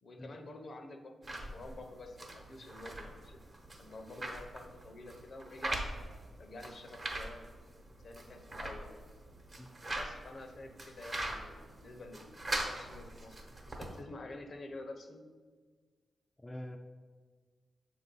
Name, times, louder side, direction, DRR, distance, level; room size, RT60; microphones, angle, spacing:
voice 1, 0.0-3.4 3.8-6.1 6.4-7.4 8.0-9.0 9.9-15.2, left 2 dB, 55° left, 5 dB, 0.7 m, -49 dB
sound 1, 1.2-14.0, right 1 dB, 40° right, 1.0 m, -42 dB
voice 2, 16.4-16.8, left 1 dB, 15° left, 3 dB, 0.4 m, -45 dB
6.9 x 2.6 x 5.3 m, 1.5 s
cardioid pair, 75°, 0 cm